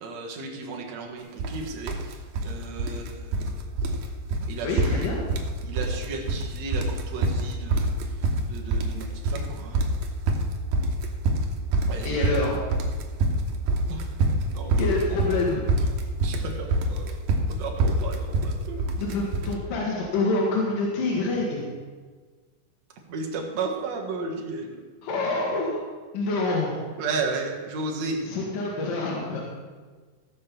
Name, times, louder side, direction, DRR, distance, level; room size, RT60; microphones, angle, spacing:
voice 1, 0.0-2.1 2.4-3.5 4.5-5.1 5.6-7.9 8.5-9.8 11.9-12.4 13.9-14.1 14.5-14.9 16.2-17.2 17.6-18.8 23.1-24.8 27.0-28.2, right 3 dB, 55° right, 1 dB, 2.6 m, -34 dB
sound 1, 1.4-1.6 1.9-2.5 2.8-3.5 3.8-4.0 4.3-4.5 4.8-5.5 5.8-6.4 6.7-19.5, right 2 dB, 85° right, 2.9 m, -25 dB
voice 2, 4.6-5.2 12.0-12.6 14.8-15.6 19.0-21.7 25.0-25.8 26.1-26.8 28.2-29.4, left 2 dB, 75° left, -3 dB, 3.2 m, -26 dB
16.0 x 5.4 x 7.1 m, 1.4 s
omnidirectional pair, 3.9 m